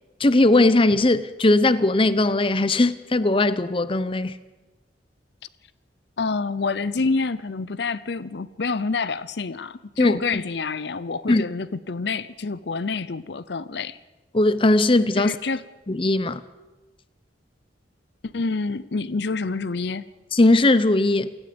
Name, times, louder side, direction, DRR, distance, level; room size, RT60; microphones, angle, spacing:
voice 1, 0.2-4.3 10.0-10.4 11.3-11.4 14.3-15.4 15.9-16.4 20.3-21.4, left 2 dB, 30° left, 0.7 m, -19 dB
voice 2, 6.2-14.0 15.2-15.6 18.3-20.0, left 4 dB, 60° left, 0.6 m, -27 dB
28.5 x 17.5 x 5.3 m
head